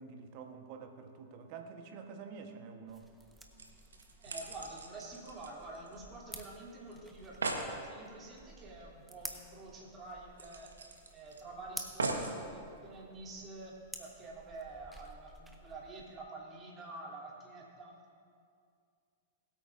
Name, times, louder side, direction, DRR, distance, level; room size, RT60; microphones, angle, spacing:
voice 1, 0.0-3.1, right 5 dB, 50° right, 6 dB, 1.1 m, -48 dB
sound 1, 2.9-16.2, right 2 dB, 10° right, 1.1 m, -52 dB
sound 2, 3.6-6.2 6.5-6.6 6.9-7.0 7.2-7.7 9.2-9.3 9.7-9.8 10.4-11.4 12.0-12.4 13.1-13.2, right 3 dB, 85° right, 1.2 m, -39 dB
voice 2, 4.2-10.7 11.1-17.9, right 2 dB, 30° right, -4 dB, 2.9 m, -48 dB
21.5 x 8.7 x 2.6 m, 2.3 s
hypercardioid pair, 105°, 0 cm